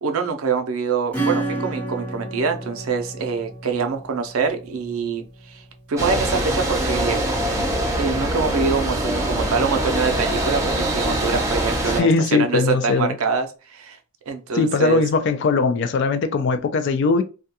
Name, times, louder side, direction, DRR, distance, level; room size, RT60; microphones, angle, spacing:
voice 1, 0.0-5.6 5.9-7.2 7.9-14.0 14.3-15.0, right 5 dB, 70° right, 0.4 m, -25 dB
Acoustic guitar / Strum, 1.1-5.4, right 2 dB, 5° left, 0.8 m, -30 dB
sound 1, 6.0-12.0, right 1 dB, 15° right, 0.4 m, -23 dB
voice 2, 12.0-13.1 14.5-17.2, left 4 dB, 50° left, 0.3 m, -20 dB
2.3 x 2.2 x 2.7 m
head